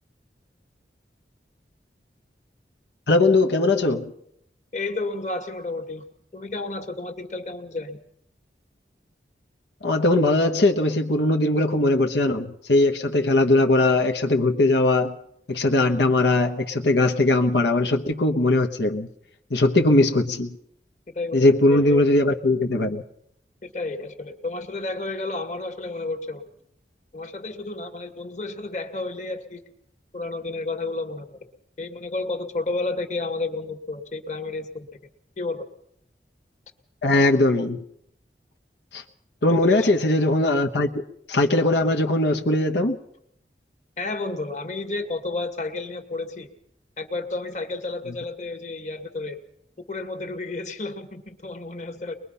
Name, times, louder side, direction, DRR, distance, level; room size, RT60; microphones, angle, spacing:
voice 1, 3.1-4.1 9.8-15.1 15.5-19.1 19.5-20.6 21.3-23.0 37.0-37.8 38.9-39.0 39.4-41.0 41.3-43.0, left 2 dB, 80° left, 3 dB, 1.2 m, -20 dB
voice 2, 4.7-6.0 6.3-8.0 21.1-22.1 23.6-26.4 27.1-29.6 30.1-31.4 31.8-34.9 35.4-35.7 39.5-39.9 44.0-46.5 47.0-49.4 49.8-52.1, left 3 dB, 40° left, 6 dB, 2.0 m, -31 dB
23.0 x 21.5 x 5.6 m, 0.73 s
head